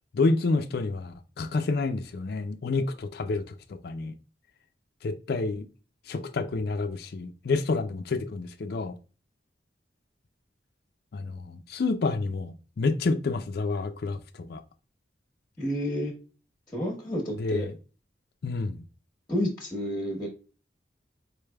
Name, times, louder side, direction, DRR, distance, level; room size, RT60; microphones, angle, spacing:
voice 1, 0.1-3.4 3.7-4.1 5.0-5.7 6.1-9.0 11.1-14.2 14.5-14.6 17.4-17.7 18.4-18.8, left 3 dB, 55° left, 0.4 m, -29 dB
voice 2, 15.6-16.1 16.7-17.7 19.3-20.3, equal, 15° left, 1.0 m, -30 dB
4.4 x 3.3 x 2.2 m
head